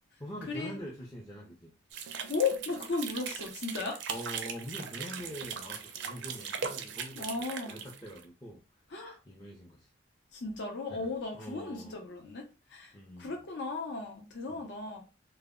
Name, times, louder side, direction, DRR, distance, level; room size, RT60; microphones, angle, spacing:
voice 1, 0.2-1.7 4.1-8.6 9.3-9.9 10.9-11.1 11.3-12.0 12.9-13.4 14.5-14.6, equal, 20° left, 0.5 m, -44 dB
sound 1, 1.9-8.2, right 6 dB, 70° right, 0.4 m, -39 dB
voice 2, 2.3-4.0 7.2-7.8 8.9-9.2 10.3-12.4 12.7-15.0, left 4 dB, 60° left, 0.6 m, -35 dB
2.1 x 2.0 x 3.5 m
head